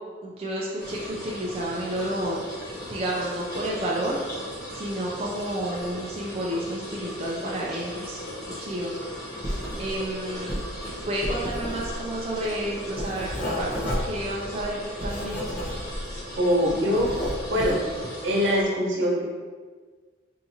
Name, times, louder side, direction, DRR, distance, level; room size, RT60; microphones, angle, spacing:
voice 1, 0.2-2.4 2.9-4.2 4.7-8.2 8.6-9.2 9.8-10.6 11.1-15.6, right 1 dB, 30° right, -4 dB, 0.4 m, -31 dB
sound 1, 0.8-18.6, equal, 20° left, 1.0 m, -38 dB
Writing, 9.4-10.1 10.3-16.2 16.5-17.9, equal, 40° left, 0.7 m, -32 dB
voice 2, 16.4-17.1 17.5-17.8 18.2-19.2, equal, 80° right, -4 dB, 0.9 m, -23 dB
4.6 x 2.7 x 2.7 m, 1.5 s
head